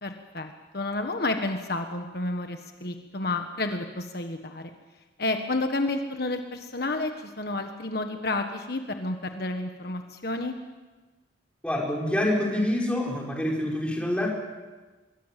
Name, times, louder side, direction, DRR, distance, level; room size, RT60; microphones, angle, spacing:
voice 1, 0.0-4.7 5.2-10.6, left 2 dB, 55° left, 5 dB, 1.4 m, -30 dB
voice 2, 11.6-14.4, left 1 dB, 5° left, -2 dB, 5.1 m, -26 dB
25.5 x 22.0 x 7.5 m, 1.2 s
head